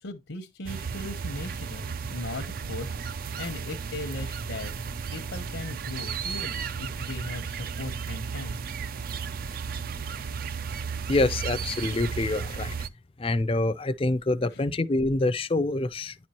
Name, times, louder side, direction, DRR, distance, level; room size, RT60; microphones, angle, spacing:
voice 1, 0.0-2.9 3.4-4.7 5.1-8.6 14.5-14.6, left 2 dB, 75° left, 0.9 m, -38 dB
sound 1, 0.7-12.9, right 6 dB, 45° right, 0.4 m, -34 dB
voice 2, 11.1-12.7 13.2-16.2, left 2 dB, 25° left, 0.4 m, -26 dB
10.0 x 4.4 x 2.9 m
head